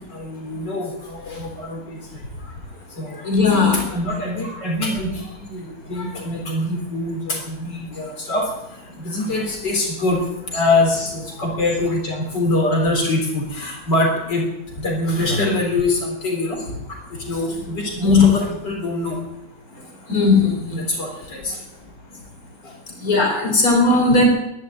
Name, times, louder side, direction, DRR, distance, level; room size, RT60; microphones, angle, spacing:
voice 1, 0.1-2.0 2.9-8.5 9.0-10.2 10.5-14.4 14.8-16.6 16.9-19.2 20.7-21.6 22.6-22.7, left 2 dB, 80° left, 1 dB, 4.3 m, -24 dB
voice 2, 3.2-3.8 18.0-18.3 20.1-20.8 23.0-24.3, left 3 dB, 55° left, 2 dB, 3.9 m, -16 dB
11.5 x 11.0 x 9.8 m, 0.90 s
omnidirectional pair, 1.9 m